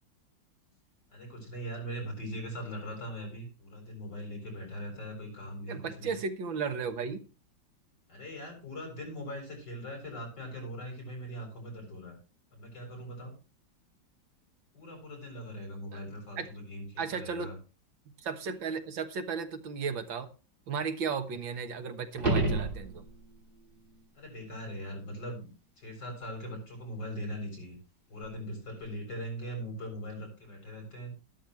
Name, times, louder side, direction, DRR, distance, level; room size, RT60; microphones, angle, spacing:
voice 1, 1.1-6.2 8.1-12.2 12.5-13.4 14.7-17.6 24.1-25.5 25.8-27.8 28.1-31.1, equal, 60° left, 7.8 m, -40 dB
voice 2, 5.7-7.2 15.9-16.0 16.4-16.5 17.0-17.5 18.2-20.3 20.7-23.1, right 5 dB, 85° right, 2.1 m, -35 dB
sound 1, 22.1-23.4 28.2-28.3, right 2 dB, 25° right, 3.3 m, -29 dB
13.5 x 12.0 x 3.2 m
omnidirectional pair, 2.1 m